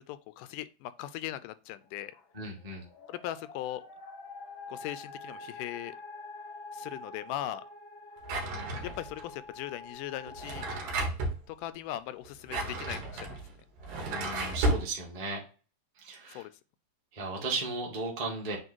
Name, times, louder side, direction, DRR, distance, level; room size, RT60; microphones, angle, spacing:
voice 1, 0.0-2.1 3.1-3.8 4.7-6.0 6.7-7.6 8.8-10.7 11.5-13.4 16.3-16.5, left 13 dB, 80° left, 2.0 m, -39 dB
sound 1, 1.8-10.7, left 3 dB, 55° left, 1.4 m, -46 dB
voice 2, 2.3-2.8 14.1-15.4 16.0-16.4 17.1-18.6, right 3 dB, 15° right, 1.4 m, -35 dB
Drawer open or close, 8.2-9.2 10.3-11.4 12.2-14.9, right 2 dB, 80° right, 3.1 m, -32 dB
7.9 x 3.2 x 4.5 m
omnidirectional pair, 3.9 m